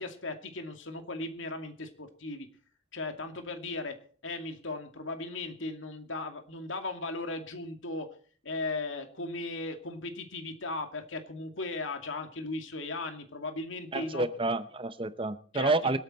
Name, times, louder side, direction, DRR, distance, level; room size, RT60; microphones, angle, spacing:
voice 1, 0.0-2.5 2.9-4.0 4.2-8.1 8.4-14.2 15.5-15.9, left 2 dB, 75° left, 2.3 m, -37 dB
voice 2, 13.9-16.0, right 2 dB, 25° right, 0.8 m, -29 dB
25.5 x 8.9 x 4.4 m
head